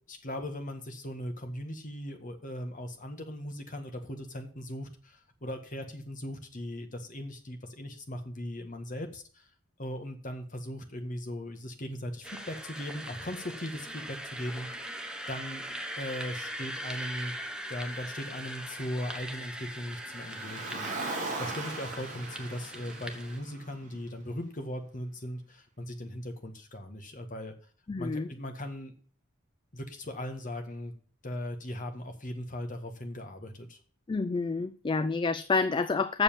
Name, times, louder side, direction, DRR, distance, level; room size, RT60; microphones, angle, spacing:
voice 1, 0.1-9.5 9.8-14.7 15.3-17.3 17.7-27.5 28.0-28.9 29.7-30.9 31.2-33.8, left 1 dB, 40° left, 5 dB, 1.7 m, -39 dB
sound 1, 12.2-23.4, right 1 dB, 5° right, 1.0 m, -41 dB
Car, 20.0-24.4, right 3 dB, 40° right, 2.0 m, -39 dB
voice 2, 27.9-28.3 34.1-36.2, left 4 dB, 25° left, 12 dB, 0.4 m, -28 dB
7.3 x 7.0 x 7.2 m, 0.43 s
head